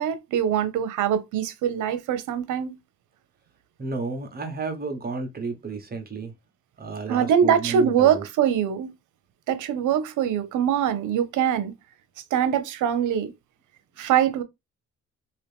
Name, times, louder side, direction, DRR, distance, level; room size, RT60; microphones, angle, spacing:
voice 1, 0.0-2.8 7.1-8.9 9.5-11.7 12.3-13.3 14.0-14.4, right 9 dB, 80° right, 0.7 m, -23 dB
voice 2, 3.8-6.3 6.8-8.2, right 4 dB, 30° right, 1.0 m, -32 dB
2.9 x 2.6 x 3.3 m
cardioid pair, 90°, 30 cm